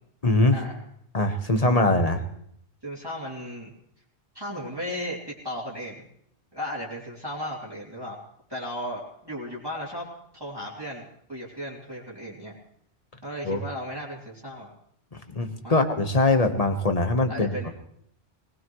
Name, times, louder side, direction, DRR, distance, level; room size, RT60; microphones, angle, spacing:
voice 1, 0.2-0.6 1.1-2.2 13.4-13.6 15.1-17.7, left 2 dB, 35° left, 7 dB, 1.3 m, -22 dB
voice 2, 2.8-3.7 4.3-6.0 6.5-8.2 8.5-10.1 10.3-12.6 13.2-14.7 15.6-15.8 17.3-17.7, equal, 20° right, -6 dB, 3.0 m, -35 dB
21.0 x 19.5 x 3.1 m, 0.69 s
omnidirectional pair, 1.1 m